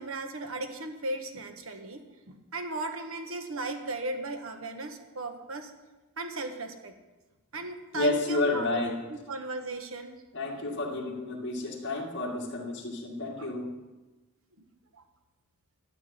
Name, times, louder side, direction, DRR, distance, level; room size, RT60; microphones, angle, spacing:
voice 1, 0.0-5.7 6.2-6.9 7.5-8.8 9.1-10.1 13.4-13.5 14.9-15.0, right 2 dB, 70° right, 6 dB, 1.5 m, -37 dB
voice 2, 7.9-9.0 10.3-13.7, left 2 dB, 55° left, 0 dB, 2.2 m, -30 dB
12.0 x 7.2 x 9.9 m, 1.1 s
head